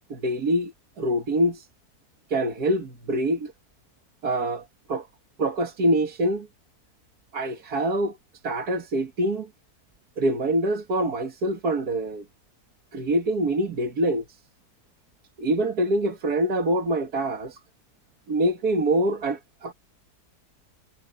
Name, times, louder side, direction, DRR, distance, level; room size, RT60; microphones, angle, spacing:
voice 1, 0.1-1.7 2.3-3.5 4.2-5.1 5.4-6.5 7.3-8.2 8.4-9.5 10.2-12.2 12.9-14.2 15.4-17.6 18.3-19.7, right 1 dB, 70° right, 2.3 m, -25 dB
omnidirectional pair, 1.7 m